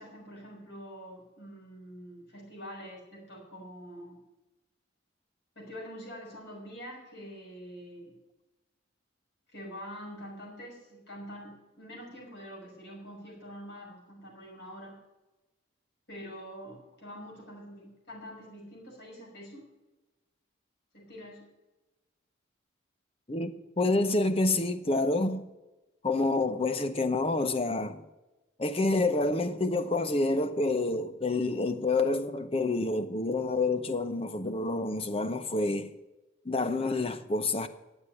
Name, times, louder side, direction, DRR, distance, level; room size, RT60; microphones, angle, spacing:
voice 1, 0.0-4.2 5.6-8.1 9.5-15.0 16.1-19.6 20.9-21.5, equal, 55° left, 5.9 m, -45 dB
voice 2, 23.8-25.4 26.0-28.0 28.6-35.9 36.5-37.7, left 2 dB, 30° left, 0.7 m, -28 dB
11.0 x 8.2 x 8.9 m
head